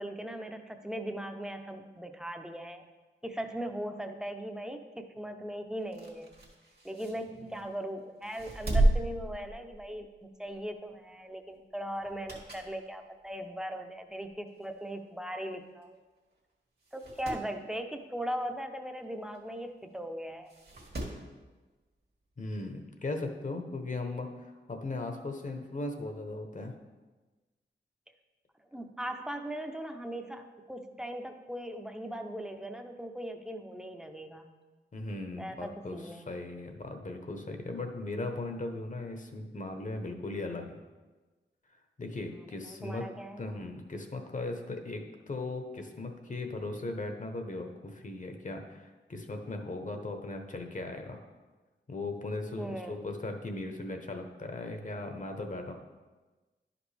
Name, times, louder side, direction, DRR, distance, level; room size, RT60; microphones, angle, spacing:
voice 1, 0.0-2.9 3.2-6.3 6.8-16.0 16.9-20.5 28.7-34.5 35.4-36.3 42.7-43.4 52.6-52.9, right 1 dB, 5° right, 5 dB, 0.6 m, -39 dB
sound 1, 5.8-7.7 8.2-10.1 10.5-10.7 12.0-12.8 13.2-13.3 14.2-14.3 14.6-14.7 14.8-14.9 15.8-16.0 16.3-16.4 16.8-17.5 19.3-19.4 20.5-21.3 22.6-22.7, right 1 dB, 55° right, 1.6 m, -33 dB
voice 2, 22.4-26.7 34.9-40.8 42.0-43.1 43.4-51.2 51.9-55.7, left 2 dB, 40° left, 5 dB, 0.9 m, -38 dB
10.5 x 5.1 x 3.3 m, 1.2 s
wide cardioid pair, 75°, 19 cm